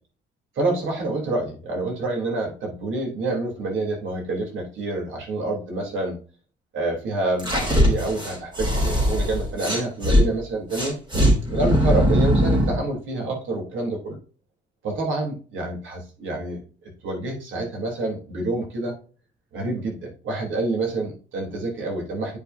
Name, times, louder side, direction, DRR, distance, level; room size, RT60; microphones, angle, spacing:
voice 1, 0.5-6.2 6.7-10.9 11.5-14.2 14.8-16.6 17.0-18.9 19.5-22.4, right 2 dB, 75° right, 0 dB, 3.4 m, -27 dB
sound 1, 7.4-10.2 10.7-12.8, equal, 25° right, 3.4 m, -20 dB
9.0 x 5.8 x 2.7 m, 0.38 s
cardioid pair, 90°, 20 cm